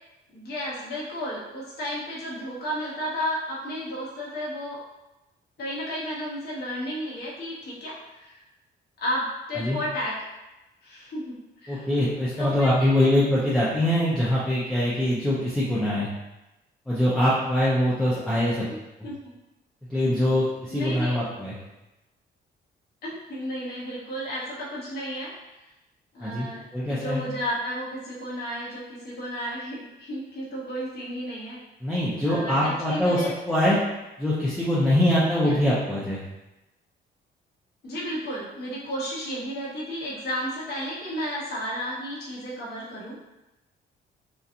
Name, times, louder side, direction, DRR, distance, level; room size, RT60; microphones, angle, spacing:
voice 1, 0.3-4.8 5.6-8.4 9.0-10.1 10.8-11.3 11.6-11.9 12.4-13.1 18.7-18.8 19.0-19.2 20.7-21.2 23.0-25.3 26.1-26.6 26.8-31.6 32.3-33.3 35.4-35.6 37.8-43.2, equal, 55° left, -7 dB, 0.9 m, -33 dB
voice 2, 11.7-16.1 16.9-18.7 19.0-19.1 19.9-21.6 26.2-27.2 31.8-33.8 34.2-36.2, left 1 dB, 5° left, -8 dB, 0.6 m, -23 dB
2.8 x 2.2 x 2.5 m, 0.99 s
cardioid pair, 90°, 20 cm